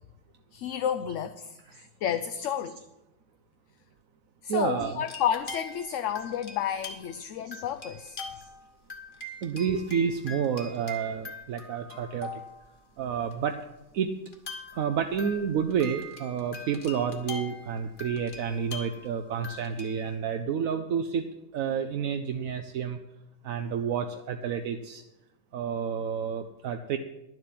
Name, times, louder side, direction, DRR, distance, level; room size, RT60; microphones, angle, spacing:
voice 1, 0.5-2.8 4.4-8.2, left 9 dB, 70° left, 7 dB, 0.9 m, -31 dB
voice 2, 4.5-5.1 5.9-6.0 7.5-7.6 9.4-12.3 13.0-13.6 13.9-14.1 14.7-21.3 21.5-23.0 23.4-25.0 25.5-27.0, right 7 dB, 80° right, 6 dB, 1.1 m, -30 dB
sound 1, 5.0-7.2 7.5-8.6 8.9-12.7 13.3-13.4 14.3-20.2, left 2 dB, 40° left, 1.5 m, -43 dB
11.0 x 7.7 x 7.5 m, 0.92 s
omnidirectional pair, 1.4 m